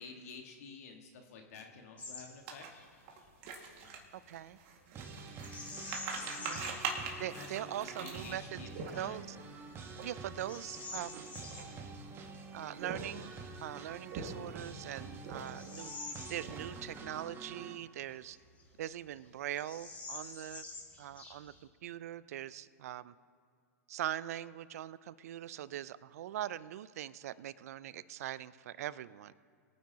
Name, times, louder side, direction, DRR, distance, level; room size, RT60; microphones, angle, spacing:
voice 1, 0.0-2.7 3.4-4.0 6.5-6.8 7.3-9.3, left 4 dB, 65° left, 3 dB, 1.6 m, -51 dB
Bird vocalization bird call bird song, 2.0-2.3 2.6-2.8 5.4-6.9 7.4-7.5 8.1-8.5 9.1-9.2 9.8-11.7 13.8-13.9 14.5-17.0 17.3-17.4 18.1-18.9 19.1-19.2 19.5-21.7, left 3 dB, 15° left, 2.3 m, -47 dB
sound 1, 2.5-9.4 9.9-10.1 10.3-10.6 11.2-12.0 12.7-13.4 13.9-14.7 15.2-15.8 16.1-16.9, right 5 dB, 50° right, 1.9 m, -43 dB
voice 2, 4.1-4.6 5.0-5.1 6.4-6.7 7.2-8.6 9.0-9.4 10.0-11.3 12.5-13.3 13.6-15.9 16.3-18.4 18.8-20.6 21.0-21.5 21.8-23.1 23.9-29.3, right 12 dB, 65° right, 18 dB, 0.4 m, -42 dB
sound 2, 4.9-17.7, right 3 dB, 25° right, 1.3 m, -48 dB
22.5 x 9.4 x 2.9 m, 2.3 s
hypercardioid pair, 115°, 9 cm